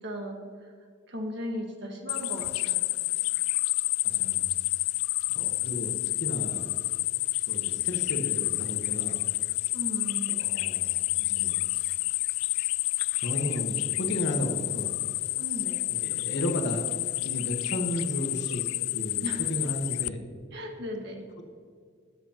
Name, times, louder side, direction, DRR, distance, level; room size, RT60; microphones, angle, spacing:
voice 1, 0.0-0.4 1.1-2.9 9.7-10.4 15.4-15.8 19.2-19.4 20.5-21.2, equal, 55° right, 2 dB, 1.7 m, -36 dB
sound 1, 2.1-20.1, left 20 dB, 80° left, 0.3 m, -29 dB
voice 2, 4.0-4.4 5.3-5.9 6.2-6.7 7.5-9.2 10.4-11.7 13.2-14.9 15.9-16.8 17.2-18.6 18.9-20.2, equal, 55° left, 3 dB, 1.2 m, -33 dB
19.0 x 7.6 x 3.0 m, 2.1 s
head